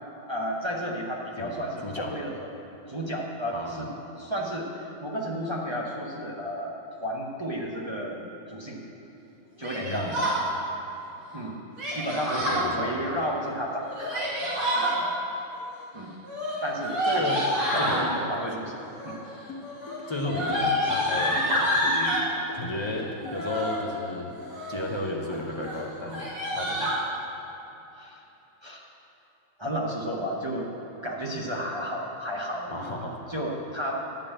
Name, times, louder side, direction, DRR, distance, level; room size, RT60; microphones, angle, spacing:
voice 1, 0.3-2.3 2.9-3.9 4.2-8.9 9.6-10.4 11.3-11.6 11.9-15.2 15.9-16.1 16.6-17.5 17.7-19.2 27.9-28.2 28.6-28.8 29.6-30.7 31.0-32.8 33.3-34.1, equal, 35° right, -2 dB, 0.4 m, -33 dB
voice 2, 1.8-2.2 3.5-3.9 9.8-10.1 12.4-12.9 17.1-17.4 17.8-18.1 20.1-22.2 22.5-24.3 24.7-26.2 26.5-26.9 32.7-33.2, left 2 dB, 40° left, -1 dB, 0.4 m, -33 dB
Yell, 9.6-10.4 11.8-12.7 13.8-14.9 16.2-18.0 18.9-19.3 19.6-22.3 23.2-23.8 24.3-24.9 25.2-25.4 25.6-25.8 26.1-27.0, equal, 90° right, 3.2 m, -28 dB
sound 1, 19.5-23.5, left 3 dB, 60° left, 1.5 m, -41 dB
11.5 x 5.1 x 8.6 m, 3.0 s
omnidirectional pair, 1.9 m